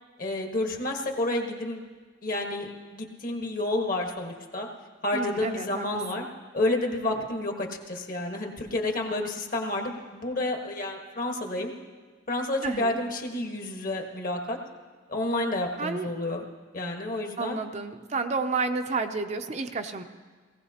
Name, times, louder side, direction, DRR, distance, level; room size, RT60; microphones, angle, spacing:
voice 1, 0.2-1.8 2.2-4.7 5.0-6.2 6.5-11.7 12.3-14.6 15.1-16.4 16.7-17.6, left 2 dB, 50° left, 2 dB, 1.4 m, -30 dB
voice 2, 5.1-5.9 6.2-6.3 7.0-7.3 12.6-13.0 15.8-16.1 17.4-20.0, right 4 dB, 40° right, 6 dB, 0.6 m, -31 dB
18.5 x 16.0 x 2.9 m, 1.5 s
head